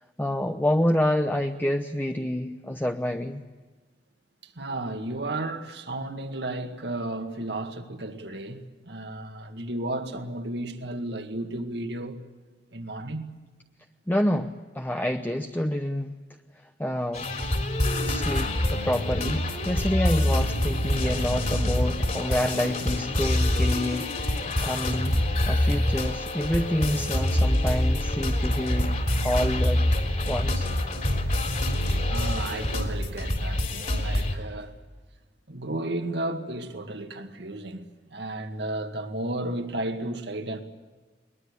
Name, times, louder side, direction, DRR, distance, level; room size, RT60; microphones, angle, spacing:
voice 1, 0.2-3.4 14.1-16.1 16.8-17.3 18.0-25.2 25.5-29.8 30.2-30.7, left 1 dB, 10° left, 0.8 m, -28 dB
voice 2, 4.4-12.2 12.7-13.3 31.9-34.8 35.5-40.6, right 1 dB, 70° right, 2.1 m, -33 dB
sound 1, 17.1-34.4, left 1 dB, 45° left, 3.6 m, -26 dB
22.5 x 20.5 x 8.2 m
head